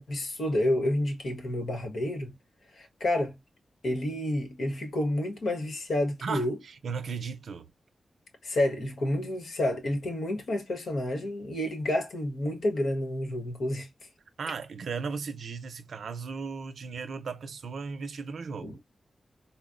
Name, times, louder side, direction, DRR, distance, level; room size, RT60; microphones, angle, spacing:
voice 1, 0.0-2.3 2.7-3.3 3.8-6.6 8.4-13.9 18.6-18.7, left 1 dB, 85° left, 1.1 m, -29 dB
voice 2, 6.2-7.7 14.4-18.8, right 5 dB, 90° right, 0.5 m, -36 dB
4.1 x 2.0 x 2.4 m
wide cardioid pair, 155°, 0 cm